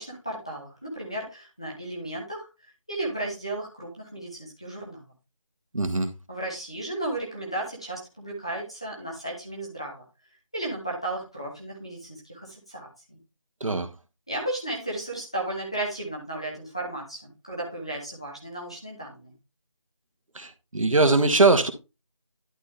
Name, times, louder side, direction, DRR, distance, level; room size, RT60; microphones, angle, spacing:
voice 1, 0.0-2.5 2.9-5.0 6.3-10.0 10.5-13.2 14.3-19.3, right 1 dB, 10° left, 0.9 m, -34 dB
voice 2, 5.7-6.1 13.6-13.9 20.3-21.7, right 3 dB, 85° right, 1.6 m, -21 dB
11.0 x 4.3 x 3.3 m
figure-of-eight pair, 180°, 17 cm